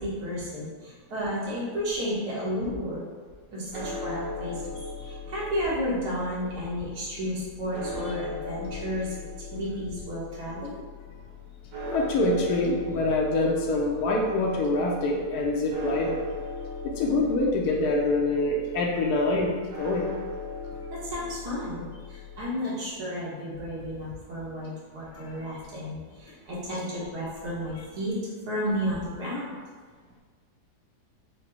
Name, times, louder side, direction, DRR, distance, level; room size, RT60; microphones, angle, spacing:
voice 1, 0.0-3.0 3.5-4.6 5.1-9.1 9.5-10.8 20.9-28.2 28.5-29.5, equal, 80° right, -8 dB, 1.7 m, -32 dB
sound 1, 3.7-22.4, left 3 dB, 60° right, 1.2 m, -39 dB
voice 2, 11.9-16.2 16.8-20.1 25.1-25.3, left 2 dB, 80° left, -2 dB, 1.1 m, -25 dB
5.0 x 2.0 x 4.4 m, 1.5 s
omnidirectional pair, 1.7 m